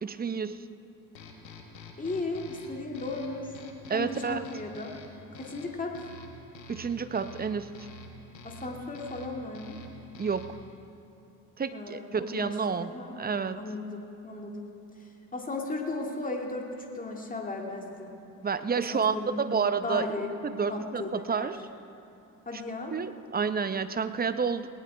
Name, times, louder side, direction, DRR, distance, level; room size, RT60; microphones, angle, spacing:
voice 1, 0.0-0.6 3.9-4.4 6.7-7.7 10.2-10.6 11.6-12.9 13.2-13.6 18.4-20.1 20.4-21.6 22.9-24.7, right 6 dB, 20° right, 12 dB, 0.7 m, -30 dB
sound 1, 1.1-10.7, left 2 dB, 85° left, 1.3 m, -48 dB
voice 2, 2.0-3.6 3.9-4.9 5.3-6.0 8.4-9.8 11.7-12.6 12.9-13.2 13.5-14.7 15.0-16.7 16.9-18.1 18.7-19.5 19.8-20.3 20.7-21.5 22.5-22.9, left 2 dB, 15° left, 1 dB, 2.2 m, -36 dB
18.5 x 18.5 x 3.4 m, 2.7 s
figure-of-eight pair, 50°, 50 cm